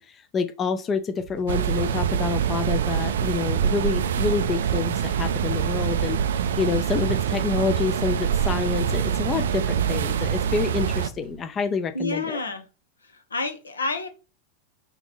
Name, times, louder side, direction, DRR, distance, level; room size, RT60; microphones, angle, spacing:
voice 1, 0.0-12.4, left 5 dB, 25° left, 0.5 m, -28 dB
sound 1, 1.2-11.4, right 7 dB, 45° right, 0.8 m, -46 dB
sound 2, 1.5-11.1, right 8 dB, 60° right, 0.4 m, -25 dB
voice 2, 11.9-12.7 13.0-14.1, left 2 dB, 75° left, 0.8 m, -29 dB
4.8 x 3.0 x 3.5 m
figure-of-eight pair, 90°, 0 cm